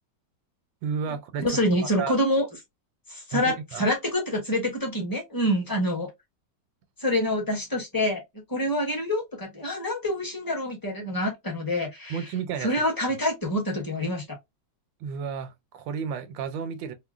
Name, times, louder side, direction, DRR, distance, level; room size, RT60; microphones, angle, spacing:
voice 1, 0.8-1.6 2.0-2.2 3.3-3.9 12.1-12.9 15.0-16.9, right 6 dB, 85° right, 1.4 m, -32 dB
voice 2, 1.4-2.5 3.1-6.1 7.0-8.2 8.5-12.3 12.6-14.4, left 1 dB, 15° left, 0.8 m, -26 dB
3.7 x 2.1 x 2.3 m
omnidirectional pair, 2.0 m